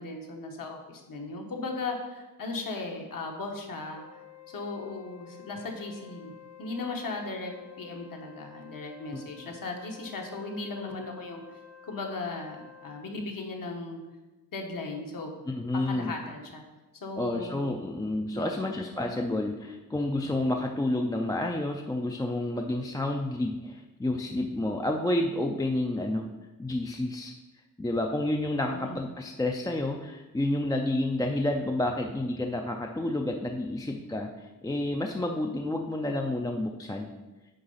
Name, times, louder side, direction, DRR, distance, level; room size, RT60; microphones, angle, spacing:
voice 1, 0.0-4.0 4.5-7.5 7.8-11.4 11.8-14.0 14.5-15.3 15.7-16.6 17.0-17.7 18.3-18.7 28.7-29.0, left 3 dB, 65° left, 1 dB, 1.3 m, -37 dB
Wind instrument woodwind instrument, 3.9-13.1, left 10 dB, 45° left, 0.6 m, -51 dB
voice 2, 15.5-16.1 17.2-26.3 26.6-27.3 27.8-37.1, left 1 dB, 10° left, 2 dB, 0.3 m, -30 dB
9.0 x 3.8 x 5.5 m, 1.1 s
wide cardioid pair, 175°, 36 cm